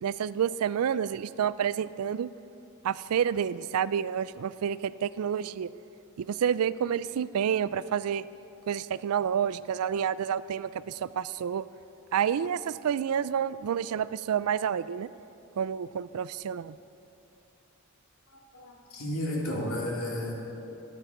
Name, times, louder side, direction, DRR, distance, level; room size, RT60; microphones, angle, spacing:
voice 1, 0.0-2.3 2.8-5.7 6.2-8.2 8.7-11.6 12.1-15.1 15.6-16.8, right 8 dB, 80° right, 17 dB, 0.4 m, -29 dB
voice 2, 18.3-20.3, left 1 dB, 70° left, -3 dB, 2.7 m, -33 dB
13.5 x 9.5 x 6.9 m, 2.9 s
head